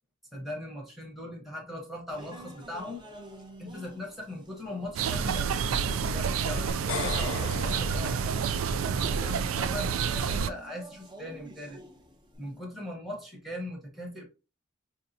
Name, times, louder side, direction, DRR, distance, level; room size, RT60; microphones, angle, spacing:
voice 1, 0.3-3.0 3.6-8.4 8.8-11.8 12.4-14.2, left 1 dB, ahead, -1 dB, 0.9 m, -40 dB
sound 1, 2.1-12.6, right 1 dB, 25° right, 0.7 m, -49 dB
sound 2, 5.0-10.5, right 6 dB, 85° right, 0.3 m, -29 dB
sound 3, 6.7-9.0, left 4 dB, 75° left, 0.6 m, -37 dB
4.5 x 2.7 x 2.7 m, 0.31 s
head